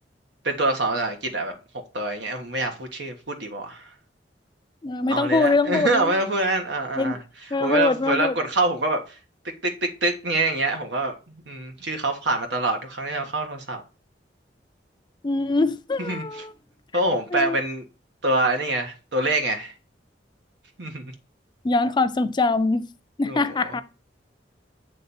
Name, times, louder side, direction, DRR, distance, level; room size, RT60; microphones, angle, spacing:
voice 1, 0.4-1.5 1.9-3.9 5.1-7.2 7.6-9.2 9.6-13.8 16.0-16.4 16.9-17.8 18.2-19.7 20.8-21.1 23.2-23.6, right 2 dB, 90° right, 1.4 m, -25 dB
voice 2, 4.8-6.1 7.0-7.2 7.5-8.4 15.2-16.5 17.3-17.6 21.6-22.9 23.2-23.8, left 3 dB, 25° left, 0.4 m, -23 dB
7.7 x 3.4 x 4.1 m
head